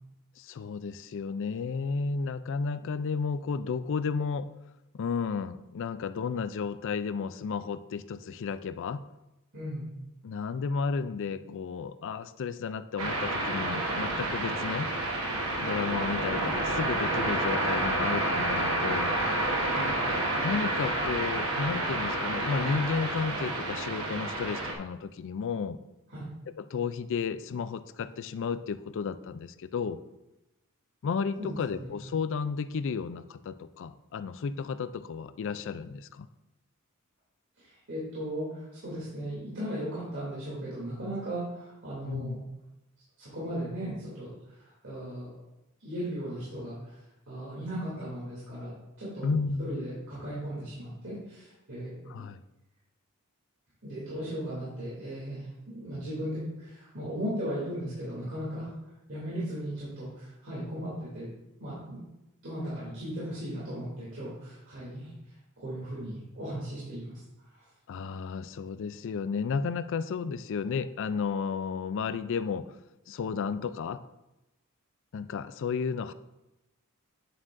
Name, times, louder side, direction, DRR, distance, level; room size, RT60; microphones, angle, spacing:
voice 1, 0.4-4.5 4.9-9.1 10.2-14.9 15.6-19.2 20.4-25.8 26.6-30.0 31.0-36.3 42.0-42.4 49.2-49.8 52.1-52.4 67.9-72.7 73.1-74.0 75.1-76.1, left 5 dB, 60° left, 13 dB, 0.4 m, -33 dB
voice 2, 9.5-9.9 19.6-19.9 26.1-26.3 31.4-31.9 37.6-42.4 43.2-44.3 44.6-45.3 45.8-47.0 47.3-49.3 49.6-52.2 53.8-55.5 55.7-58.7 59.1-61.3 61.6-62.0 62.4-65.1 65.6-67.2 67.5-67.6, equal, 60° right, -9 dB, 2.8 m, -37 dB
sound 1, 13.0-24.7, right 2 dB, 75° right, 1.2 m, -29 dB
8.9 x 7.3 x 2.6 m, 0.95 s
head